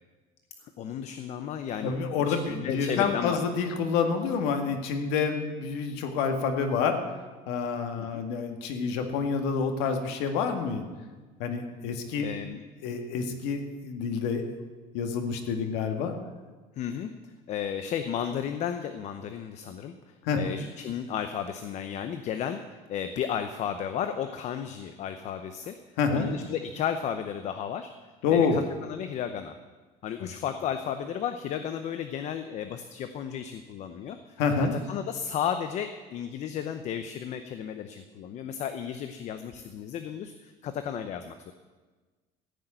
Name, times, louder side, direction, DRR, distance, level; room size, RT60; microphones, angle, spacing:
voice 1, 0.8-3.4 8.0-8.2 12.2-12.6 16.8-17.1 17.5-25.8 26.1-27.9 28.3-29.6 30.0-41.5, left 8 dB, 45° left, 9 dB, 0.7 m, -34 dB
voice 2, 1.8-7.0 7.5-10.8 11.4-12.3 12.8-14.4 14.9-16.1 20.2-20.4 26.0-26.3 28.2-28.6 30.2-30.3 34.4-34.7, left 5 dB, 85° left, 5 dB, 1.9 m, -28 dB
15.0 x 6.5 x 9.0 m, 1.3 s
cardioid pair, 160°, 17 cm